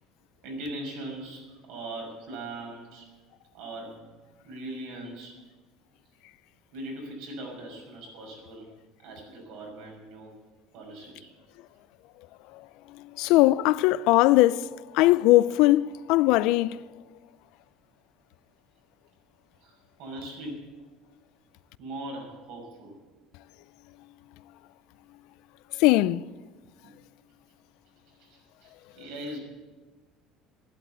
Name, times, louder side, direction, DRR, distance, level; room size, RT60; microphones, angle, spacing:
voice 1, 0.4-3.1 3.5-4.1 4.4-5.4 6.7-8.7 9.0-10.3 10.7-11.3 19.6-20.7 21.8-23.0 26.8-27.0 28.2-29.4, right 1 dB, 70° right, 6.2 m, -40 dB
voice 2, 13.2-14.7 14.9-16.8 25.8-26.2, left 17 dB, 65° left, 0.4 m, -20 dB
11.5 x 11.5 x 7.9 m
cardioid pair, 165°, 0 cm